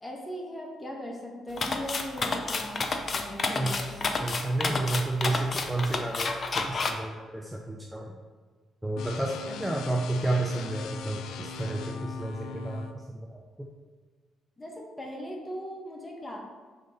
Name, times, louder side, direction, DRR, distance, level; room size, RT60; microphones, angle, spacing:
voice 1, 0.0-4.0 9.4-9.8 14.6-16.4, equal, 20° left, 0 dB, 1.3 m, -39 dB
sound 1, 1.6-6.9, left 3 dB, 40° left, 0.6 m, -30 dB
voice 2, 4.2-8.1 8.8-13.4, right 2 dB, 5° right, 0 dB, 0.5 m, -31 dB
sound 2, 9.0-12.9, left 6 dB, 80° left, 0.4 m, -40 dB
5.4 x 3.7 x 5.3 m, 1.5 s
cardioid pair, 90°, 0 cm